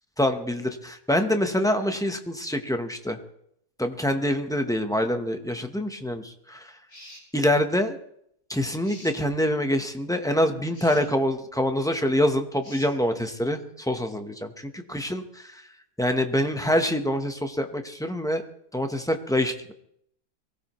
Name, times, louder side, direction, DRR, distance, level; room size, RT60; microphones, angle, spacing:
voice 1, 0.2-3.2 3.8-6.7 7.3-8.0 8.5-15.6 16.0-18.4 18.7-19.7, left 1 dB, 5° left, 6 dB, 0.5 m, -25 dB
sound 1, 6.9-7.3 8.8-9.2 10.7-11.1 12.6-12.9, left 1 dB, 75° left, 5.9 m, -46 dB
23.0 x 16.5 x 3.1 m, 0.72 s
omnidirectional pair, 1.8 m